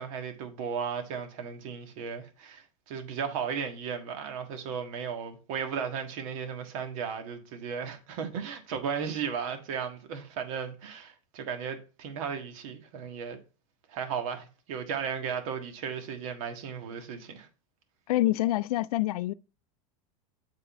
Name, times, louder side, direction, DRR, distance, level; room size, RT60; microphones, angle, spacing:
voice 1, 0.0-13.4 13.9-17.5, right 6 dB, 65° right, 1.6 m, -35 dB
voice 2, 18.1-19.3, left 16 dB, 80° left, 0.4 m, -26 dB
7.9 x 3.9 x 4.5 m
supercardioid pair, 130°, 19 cm